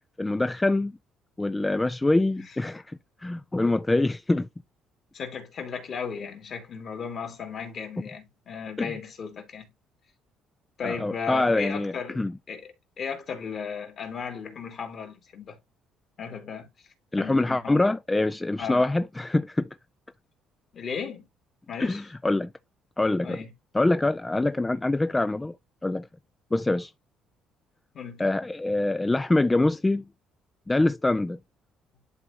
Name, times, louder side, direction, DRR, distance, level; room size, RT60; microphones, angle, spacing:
voice 1, 0.2-0.9 1.4-4.5 8.8-8.9 10.8-12.3 17.1-19.7 21.8-22.5 23.0-23.4 23.7-25.5 25.8-26.1 26.5-26.9 28.2-30.0 30.7-31.4, left 2 dB, 15° left, 0.3 m, -25 dB
voice 2, 5.1-9.7 10.8-12.2 12.5-15.6 16.2-16.7 17.2-17.8 18.6-18.9 20.7-21.2 21.7-22.0 23.2-23.5 27.9-28.2, left 6 dB, 50° left, 2.5 m, -35 dB
11.0 x 3.9 x 2.8 m
cardioid pair, 110°, 0 cm